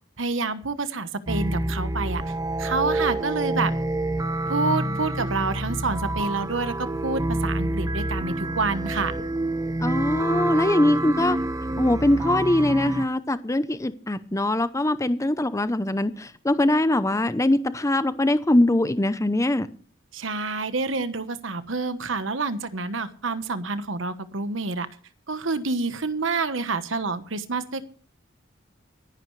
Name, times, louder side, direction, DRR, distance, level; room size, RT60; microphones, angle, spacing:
voice 1, 0.2-2.2 2.6-3.7 4.5-9.1 20.1-24.9 25.3-27.8, right 3 dB, 75° right, 11 dB, 1.2 m, -28 dB
sound 1, 1.3-13.1, right 1 dB, 20° right, 0.6 m, -27 dB
voice 2, 9.8-11.4 11.8-19.7, left 1 dB, 15° left, 13 dB, 0.7 m, -22 dB
24.0 x 11.0 x 3.3 m, 0.42 s
head